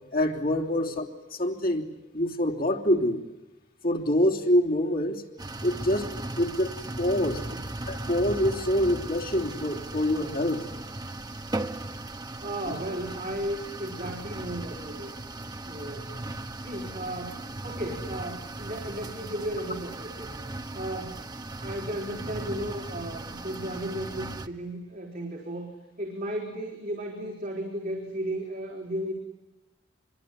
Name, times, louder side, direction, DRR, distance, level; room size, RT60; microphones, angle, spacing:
voice 1, 0.1-1.9 2.1-3.2 3.8-5.2 5.6-6.7 7.0-7.4 7.9-10.6, left 1 dB, 50° left, 0 dB, 3.1 m, -26 dB
sound 1, 5.4-24.5, right 2 dB, 20° right, 1.0 m, -37 dB
voice 2, 12.4-15.2 15.6-16.1 16.6-20.3 20.7-21.3 21.6-25.7 26.0-29.1, right 1 dB, 50° right, -2 dB, 3.8 m, -35 dB
26.0 x 22.5 x 10.0 m, 1.0 s
head